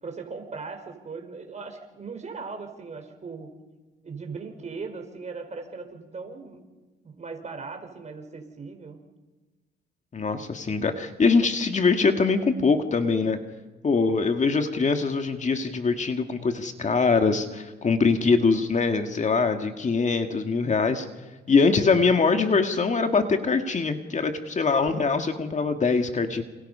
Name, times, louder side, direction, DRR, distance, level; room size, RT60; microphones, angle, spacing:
voice 1, 0.0-3.5 4.0-6.6 7.0-9.0, right 4 dB, 35° right, 5 dB, 5.0 m, -38 dB
voice 2, 10.1-13.4 13.8-21.1 21.5-26.4, left 4 dB, 35° left, 6 dB, 2.0 m, -23 dB
29.0 x 27.0 x 5.6 m, 1.2 s
cardioid pair, 90°, 20 cm